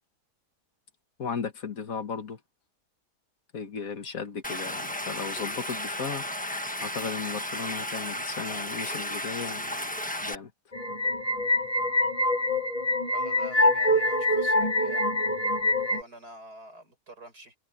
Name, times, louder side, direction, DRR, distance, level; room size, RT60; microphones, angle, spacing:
voice 1, 1.2-2.4 3.5-6.2 6.8-9.9 10.2-10.5, left 6 dB, 60° left, 1.9 m, -35 dB
Stream, 4.4-10.3, left 1 dB, 5° left, 1.2 m, -34 dB
sound 1, 10.7-16.0, left 1 dB, 25° left, 1.7 m, -25 dB
voice 2, 13.1-15.1 15.8-17.6, right 2 dB, 85° right, 7.8 m, -47 dB
omnidirectional pair, 1.6 m